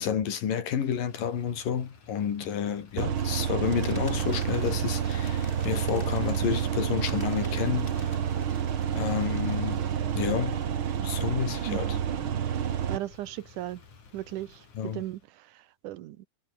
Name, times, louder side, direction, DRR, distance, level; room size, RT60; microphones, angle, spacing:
voice 1, 0.0-7.9 8.9-9.8 10.1-10.6 11.0-12.0 14.7-15.0, left 8 dB, 80° left, 4.4 m, -30 dB
Motor vehicle (road), 0.6-15.3, left 5 dB, 60° left, 5.9 m, -54 dB
sound 1, 3.0-13.0, right 9 dB, 50° right, 1.8 m, -29 dB
Bird, 3.6-11.3, left 1 dB, 15° left, 7.8 m, -49 dB
voice 2, 11.7-12.0 12.9-13.8 14.1-16.3, right 14 dB, 75° right, 2.3 m, -37 dB
omnidirectional pair, 3.8 m